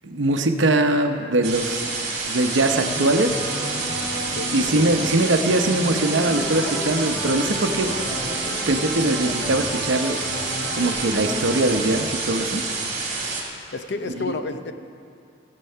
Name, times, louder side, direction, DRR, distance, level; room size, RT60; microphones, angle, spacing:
voice 1, 0.0-1.9 2.2-3.4 4.5-7.9 8.7-10.2 10.7-12.6 14.2-14.3, right 2 dB, 80° right, 6 dB, 0.8 m, -22 dB
sound 1, 1.4-13.4, right 3 dB, 40° right, 2.3 m, -28 dB
sound 2, 2.5-12.1, equal, 10° left, 2.8 m, -33 dB
Speech, 6.3-12.1, equal, 10° right, 1.7 m, -40 dB
voice 2, 13.7-14.7, left 3 dB, 60° left, 9 dB, 0.6 m, -30 dB
17.0 x 7.5 x 5.6 m, 2.5 s
head